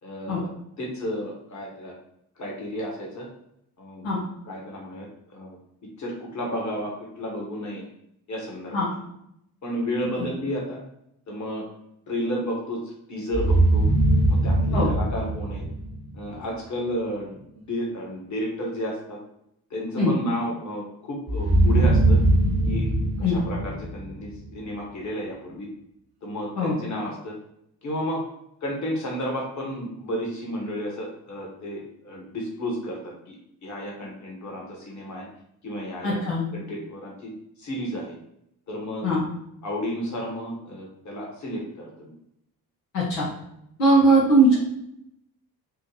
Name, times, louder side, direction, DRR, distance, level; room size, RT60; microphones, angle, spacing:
voice 1, 0.0-0.5 0.8-1.9 2.4-3.3 3.8-4.2 4.4-5.1 5.3-5.6 6.0-7.8 8.3-8.9 9.6-10.8 11.3-11.6 12.1-13.9 14.3-15.6 16.1-19.2 19.7-22.2 22.7-22.9 23.2-25.7 26.2-27.4 27.8-28.2 28.6-33.4 33.6-35.2 35.6-36.2 36.5-37.3 37.6-38.2 38.7-39.0 39.6-42.1, equal, 35° left, -2 dB, 1.3 m, -32 dB
sound 1, 13.3-16.3 21.3-24.5, right 1 dB, 50° right, 0.7 m, -21 dB
voice 2, 36.0-36.4 39.0-39.2 42.9-43.3 43.8-44.6, right 1 dB, 80° left, -6 dB, 0.9 m, -20 dB
3.5 x 2.1 x 3.2 m, 0.77 s
figure-of-eight pair, 40°, 49 cm